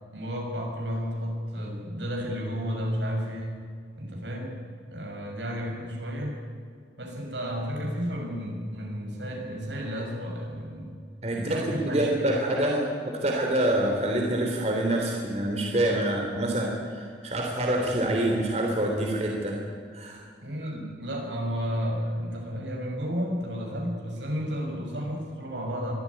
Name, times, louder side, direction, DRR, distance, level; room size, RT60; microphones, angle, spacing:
voice 1, 0.1-3.7 4.0-4.5 4.9-6.4 7.0-10.9 11.3-12.3 20.4-25.9, equal, 75° right, 1 dB, 6.4 m, -32 dB
voice 2, 11.2-12.8 13.1-19.6 19.9-20.2 20.6-20.8, right 1 dB, 35° right, 0 dB, 3.4 m, -26 dB
23.5 x 14.5 x 9.7 m, 2.1 s
head